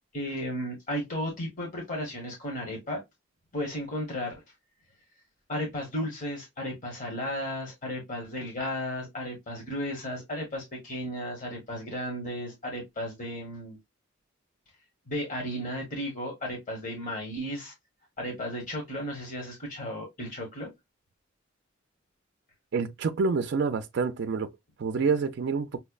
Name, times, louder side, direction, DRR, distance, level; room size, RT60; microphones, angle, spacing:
voice 1, 0.1-3.0 3.5-4.3 5.5-13.8 15.1-17.7 18.2-20.7, equal, 40° left, 1.1 m, -34 dB
voice 2, 22.7-24.5 24.8-25.8, right 4 dB, 60° right, 0.4 m, -27 dB
5.7 x 2.1 x 2.3 m
head